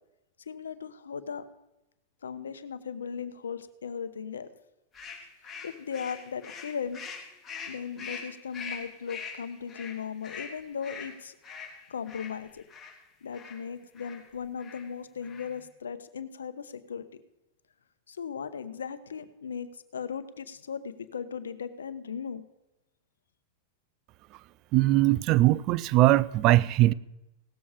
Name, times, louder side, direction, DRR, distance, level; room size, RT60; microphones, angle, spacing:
voice 1, 0.5-1.4 2.2-4.5 5.6-7.0 7.7-11.3 11.9-12.6 13.2-17.2 18.1-22.4, left 6 dB, 90° left, 0.8 m, -37 dB
sound 1, 4.9-12.9 13.3-13.6 14.0-14.2 14.6-14.9 15.2-15.6, left 5 dB, 20° left, 3.1 m, -43 dB
voice 2, 24.7-26.9, right 16 dB, 45° right, 0.4 m, -21 dB
18.0 x 7.2 x 4.9 m
hypercardioid pair, 110°, 0 cm